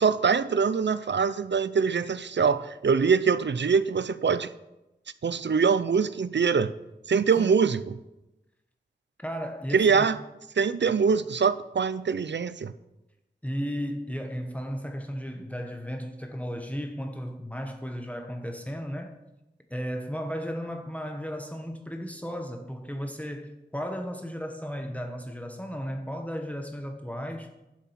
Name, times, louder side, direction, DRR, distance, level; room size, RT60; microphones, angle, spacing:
voice 1, 0.0-4.5 5.2-6.7 7.1-8.0 9.7-10.2 10.6-12.7, right 5 dB, 80° right, 0.5 m, -23 dB
voice 2, 7.4-7.7 9.2-10.1 13.4-19.2 19.7-27.5, equal, 10° left, 1.3 m, -35 dB
11.5 x 7.5 x 5.9 m
wide cardioid pair, 40°, 18 cm